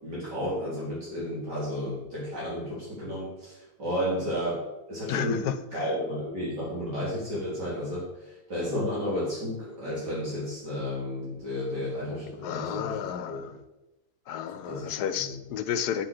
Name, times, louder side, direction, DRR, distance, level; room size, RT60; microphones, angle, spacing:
voice 1, 0.0-4.6 4.9-5.4 5.7-13.4 14.6-15.3, left 1 dB, 70° right, -8 dB, 3.9 m, -32 dB
voice 2, 5.1-6.0 12.4-13.5 14.3-16.1, left 9 dB, 70° left, 11 dB, 1.2 m, -32 dB
9.6 x 5.8 x 6.5 m, 0.99 s
omnidirectional pair, 1.9 m